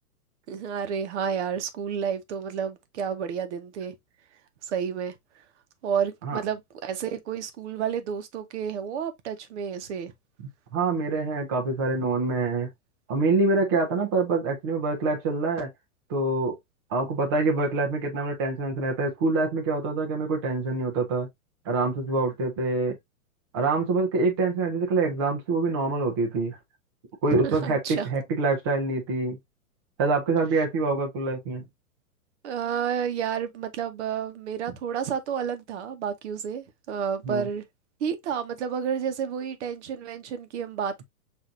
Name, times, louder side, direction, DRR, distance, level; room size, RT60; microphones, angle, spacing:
voice 1, 0.5-3.9 4.6-5.2 5.8-10.1 27.3-28.1 32.4-37.7 38.0-41.0, right 7 dB, 50° right, 0.8 m, -30 dB
voice 2, 10.7-12.7 13.1-15.7 16.1-16.6 16.9-21.3 21.7-23.0 23.5-26.6 27.2-29.4 30.0-31.6 37.2-37.5, right 3 dB, 20° right, 0.4 m, -25 dB
5.9 x 2.6 x 2.4 m
hypercardioid pair, 150°, 45 cm